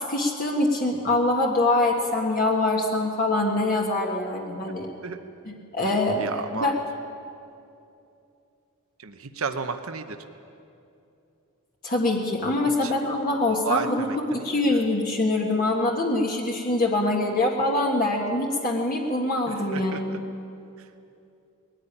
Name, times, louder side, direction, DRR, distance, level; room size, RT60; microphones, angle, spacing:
voice 1, 0.0-4.9 5.5-6.7 11.8-14.1 14.3-20.2, left 2 dB, 40° left, 0 dB, 1.5 m, -24 dB
voice 2, 6.2-6.7 9.0-10.2 12.8-12.9 13.5-14.9 19.5-20.2 20.8-20.9, right 5 dB, 65° right, 7 dB, 1.0 m, -33 dB
20.5 x 14.0 x 10.0 m, 2.7 s
head